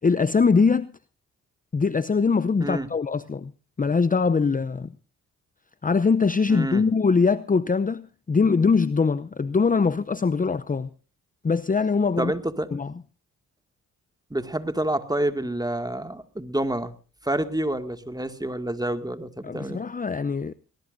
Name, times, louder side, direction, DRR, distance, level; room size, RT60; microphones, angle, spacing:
voice 1, 0.0-0.9 1.7-3.5 3.8-4.9 5.8-10.9 11.4-12.3 12.7-12.9 19.4-20.5, left 4 dB, 25° left, 0.7 m, -22 dB
voice 2, 6.5-6.8 12.2-12.7 14.3-16.9 17.2-19.8, right 1 dB, 10° right, 2.2 m, -28 dB
21.0 x 20.0 x 2.7 m
supercardioid pair, 45°, 36 cm